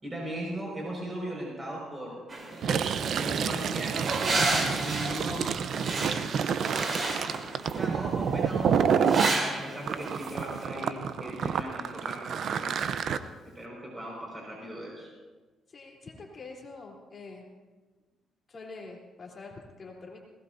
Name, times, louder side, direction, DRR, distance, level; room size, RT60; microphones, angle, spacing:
voice 1, 0.0-2.2 3.2-4.1 4.5-5.7 7.8-12.7 13.4-15.1, right 1 dB, 15° right, -3 dB, 5.5 m, -38 dB
sound 1, 2.3-10.6, right 2 dB, 35° right, 3.9 m, -33 dB
Fill (with liquid), 2.5-9.3 9.9-13.2, right 7 dB, 65° right, 0.8 m, -29 dB
voice 2, 15.7-17.4 18.5-20.2, left 3 dB, 40° left, -1 dB, 3.6 m, -45 dB
20.5 x 19.0 x 2.7 m, 1.3 s
cardioid pair, 90°, 0 cm